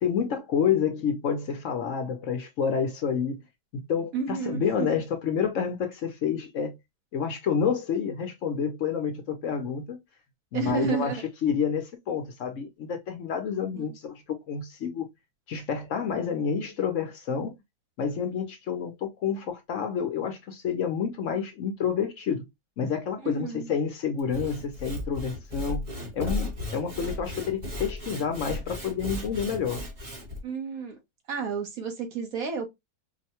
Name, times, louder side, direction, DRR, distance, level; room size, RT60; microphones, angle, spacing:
voice 1, 0.0-3.4 3.7-6.7 7.1-10.0 10.5-15.1 15.5-17.5 18.0-22.4 22.8-25.9 26.1-29.8, left 7 dB, 65° left, 0.9 m, -29 dB
voice 2, 4.1-4.9 10.5-11.2 13.7-13.9 23.2-23.7 30.4-31.0 31.3-32.7, right 5 dB, 70° right, 1.4 m, -31 dB
Sawing / Wood, 24.2-30.4, left 2 dB, 25° right, 1.0 m, -35 dB
4.7 x 2.2 x 2.8 m
omnidirectional pair, 1.6 m